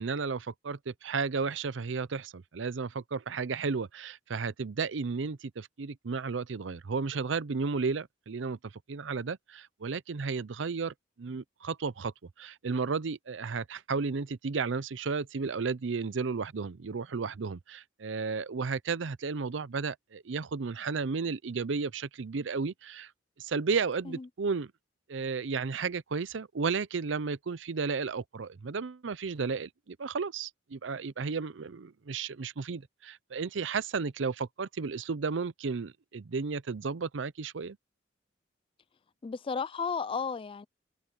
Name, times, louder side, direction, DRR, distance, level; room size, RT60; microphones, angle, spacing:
voice 1, 0.0-12.1 12.4-23.1 23.4-24.7 25.1-37.8, right 5 dB, 80° right, 0.6 m, -33 dB
voice 2, 39.2-40.7, left 5 dB, 30° left, 0.4 m, -33 dB
head